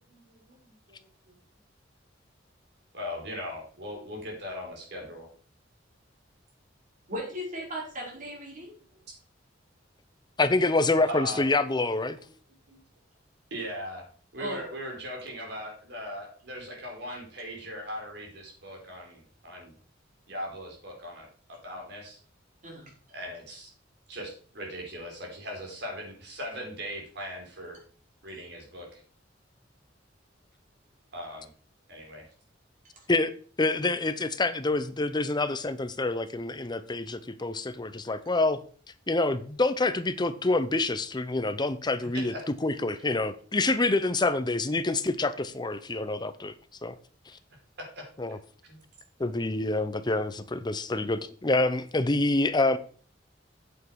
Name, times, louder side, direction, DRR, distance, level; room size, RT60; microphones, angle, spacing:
voice 1, 2.9-5.3 11.1-11.4 12.2-12.3 12.7-12.8 13.5-14.0 14.3-19.7 20.3-22.2 23.1-23.7 24.1-27.8 28.2-29.0 31.1-31.5 31.9-32.3 42.1-42.4 47.9-48.0 48.6-48.8, equal, 65° right, 4.3 m, -39 dB
voice 2, 7.1-8.8 14.4-14.7 22.6-22.9 32.9-33.0, equal, 45° right, 5.1 m, -37 dB
voice 3, 10.4-12.2 33.1-33.3 33.6-38.6 39.1-42.3 42.6-46.5 46.8-47.0 47.3-47.4 48.2-48.4 49.2-52.8, left 2 dB, 25° left, 0.7 m, -27 dB
8.3 x 8.3 x 4.7 m
head